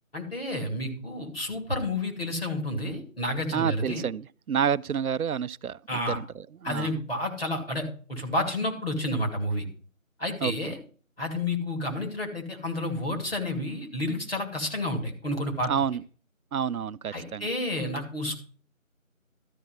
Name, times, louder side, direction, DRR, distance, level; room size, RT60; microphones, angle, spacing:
voice 1, 0.1-4.0 5.9-6.2 6.6-9.6 10.2-10.8 11.2-15.7 17.1-18.3, left 1 dB, 45° left, 2.7 m, -30 dB
voice 2, 3.5-6.9 10.4-10.7 15.7-16.0 16.5-17.5, right 8 dB, 90° right, 0.5 m, -29 dB
13.0 x 4.6 x 7.7 m
figure-of-eight pair, 170°, 42 cm